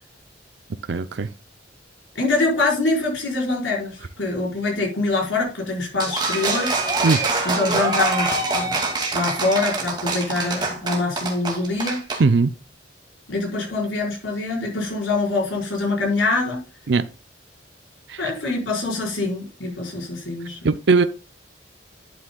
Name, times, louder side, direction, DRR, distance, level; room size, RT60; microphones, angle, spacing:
voice 1, 0.9-1.3 7.0-7.2 12.2-12.5 16.9-17.0 18.1-18.2 20.6-21.0, right 4 dB, 60° right, 0.5 m, -18 dB
voice 2, 2.1-6.8 7.4-8.9 9.1-12.0 13.3-16.6 18.2-20.7, left 3 dB, 80° left, 4.8 m, -24 dB
sound 1, 6.0-12.2, right 3 dB, 20° right, 2.2 m, -24 dB
11.5 x 8.7 x 2.3 m
head